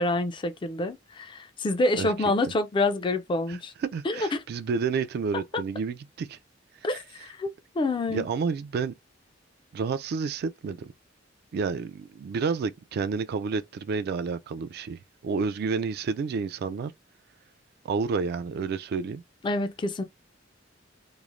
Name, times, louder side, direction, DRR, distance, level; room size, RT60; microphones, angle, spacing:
voice 1, 0.0-3.7 4.0-4.4 6.8-8.3 19.4-20.0, left 2 dB, 25° left, 0.3 m, -27 dB
voice 2, 2.0-2.3 3.5-6.4 6.9-7.0 8.1-8.9 9.7-10.9 11.5-16.9 17.8-19.2, right 5 dB, 55° right, 0.3 m, -30 dB
3.0 x 2.0 x 2.4 m
head